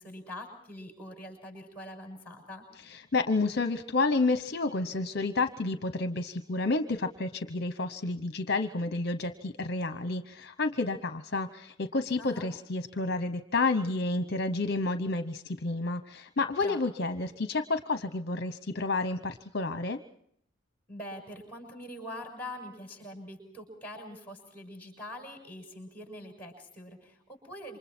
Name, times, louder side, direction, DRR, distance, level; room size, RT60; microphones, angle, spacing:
voice 1, 0.0-2.7 12.2-12.5 16.6-16.8 20.9-27.8, left 1 dB, 10° left, 3 dB, 6.6 m, -44 dB
voice 2, 2.9-20.0, left 3 dB, 50° left, 9 dB, 0.9 m, -30 dB
28.0 x 25.0 x 4.4 m, 0.68 s
head